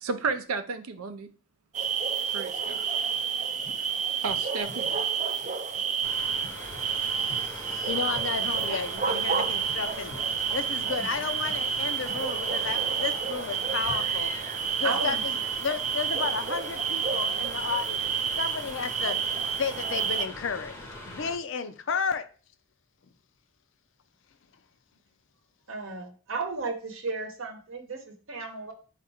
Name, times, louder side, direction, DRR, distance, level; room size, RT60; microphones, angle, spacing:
voice 1, 0.0-1.3 2.3-2.9 4.2-4.9, right 4 dB, 90° right, 9 dB, 0.5 m, -32 dB
sound 1, 1.7-20.3, right 7 dB, 35° right, 0.3 m, -29 dB
Swamp Gas Bubbling, 3.6-14.1, left 1 dB, 90° left, 1.0 m, -50 dB
Mechanical fan, 6.0-21.3, left 1 dB, 10° left, 0.6 m, -43 dB
voice 2, 7.1-10.1 10.5-14.3 14.8-15.2 15.6-19.2 19.6-20.8 21.1-22.3, left 5 dB, 60° left, 9 dB, 0.4 m, -32 dB
voice 3, 14.8-15.5 25.7-28.7, right 4 dB, 70° right, 4 dB, 0.9 m, -34 dB
4.5 x 2.5 x 4.1 m, 0.37 s
head